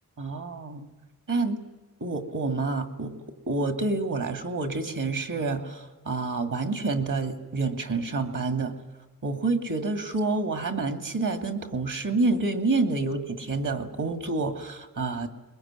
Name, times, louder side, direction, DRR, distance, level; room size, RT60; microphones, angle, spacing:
voice 1, 0.2-0.9 1.3-1.6 2.0-3.1 3.5-8.8 9.2-15.3, right 3 dB, 60° right, 7 dB, 2.8 m, -28 dB
22.5 x 22.0 x 9.2 m, 1.2 s
wide cardioid pair, 110°, 36 cm